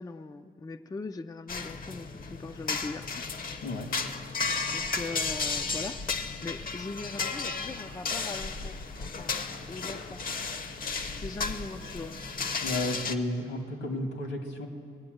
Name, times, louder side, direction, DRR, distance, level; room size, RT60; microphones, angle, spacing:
voice 1, 0.0-3.2 4.7-6.1 6.4-9.4 9.7-10.2 11.2-12.2, left 3 dB, 20° left, 9 dB, 0.4 m, -40 dB
sound 1, 1.5-13.2, left 4 dB, 45° left, 0.9 m, -34 dB
voice 2, 12.6-14.7, left 1 dB, 75° left, 4 dB, 2.1 m, -32 dB
20.5 x 8.7 x 7.8 m, 2.3 s
cardioid pair, 90°, 20 cm